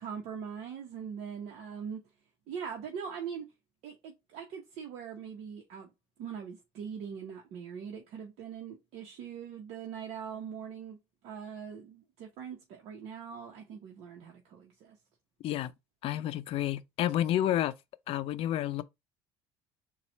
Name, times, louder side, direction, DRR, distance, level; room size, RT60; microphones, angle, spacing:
voice 1, 0.0-2.0 2.5-3.5 3.8-5.9 6.2-11.0 11.2-15.0, right 7 dB, 70° right, 0.9 m, -42 dB
voice 2, 16.0-17.7 18.1-18.8, left 12 dB, 55° left, 0.5 m, -30 dB
4.2 x 2.4 x 4.3 m
supercardioid pair, 105°, 11 cm